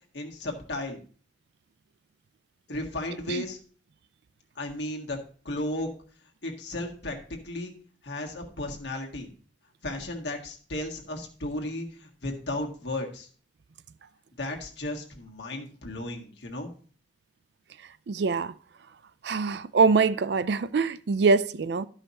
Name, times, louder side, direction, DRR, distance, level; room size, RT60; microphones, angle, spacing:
voice 1, 0.1-1.0 2.7-3.6 4.6-5.2 5.4-5.9 6.4-7.7 8.0-9.3 9.8-13.3 14.4-16.7, left 1 dB, 65° left, 1.6 m, -34 dB
voice 2, 18.1-18.5 19.2-21.9, right 4 dB, 60° right, 0.4 m, -24 dB
12.0 x 5.6 x 4.1 m
head